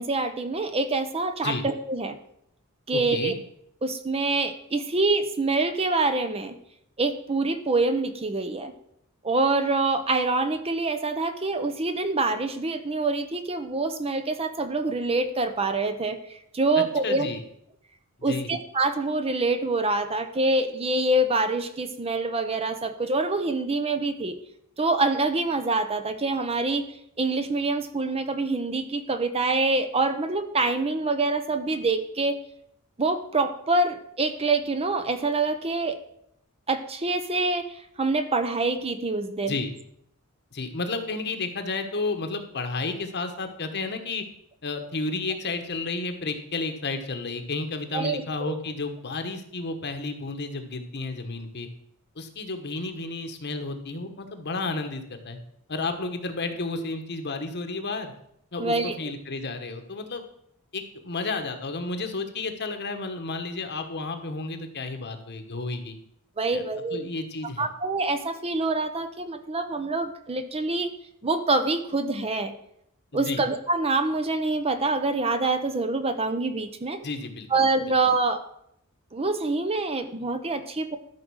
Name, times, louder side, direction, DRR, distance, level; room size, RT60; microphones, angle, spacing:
voice 1, 0.0-2.2 2.9-3.3 3.8-6.6 7.0-8.7 9.2-17.3 18.2-24.3 24.8-26.9 27.2-32.4 33.0-36.0 36.7-39.6 47.9-48.5 58.6-58.9 66.4-67.0 67.6-70.9 71.2-72.5 73.1-77.0 77.5-78.4 79.1-81.0, right 3 dB, 30° right, 9 dB, 0.8 m, -26 dB
voice 2, 2.9-3.3 16.8-17.4 18.3-18.5 39.5-39.7 40.5-44.2 44.6-51.7 52.2-55.4 55.7-58.1 58.5-60.2 60.7-66.0 66.5-66.6 66.9-67.7 73.1-73.4 77.0-77.5, left 3 dB, 50° left, 7 dB, 1.2 m, -32 dB
13.0 x 5.1 x 6.3 m, 0.73 s
head